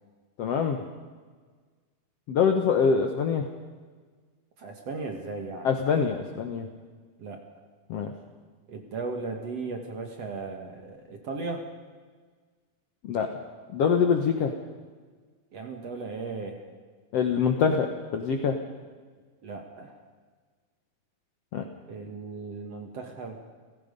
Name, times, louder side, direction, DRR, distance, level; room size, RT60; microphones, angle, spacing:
voice 1, 0.4-0.8 2.3-3.4 5.6-6.7 7.9-8.1 13.1-13.3 13.7-14.5 17.1-18.5 21.5-21.6, left 6 dB, 70° left, 4 dB, 1.5 m, -24 dB
voice 2, 4.6-5.7 7.2-7.4 8.7-11.6 15.5-16.7 19.4-20.0 21.9-23.4, right 3 dB, 50° right, 3 dB, 2.3 m, -36 dB
30.0 x 16.5 x 5.4 m, 1.5 s
omnidirectional pair, 4.5 m